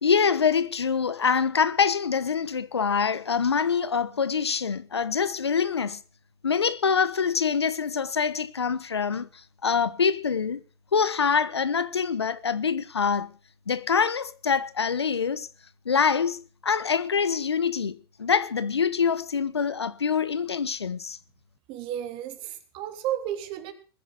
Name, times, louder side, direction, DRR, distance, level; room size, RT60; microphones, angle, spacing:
voice 1, 0.0-6.0 6.4-10.6 10.9-13.3 13.7-15.5 15.8-21.2, left 6 dB, 90° left, 1.3 m, -25 dB
voice 2, 21.7-23.7, right 11 dB, 40° right, 3.3 m, -33 dB
20.5 x 10.0 x 6.6 m
hypercardioid pair, 110°, 13 cm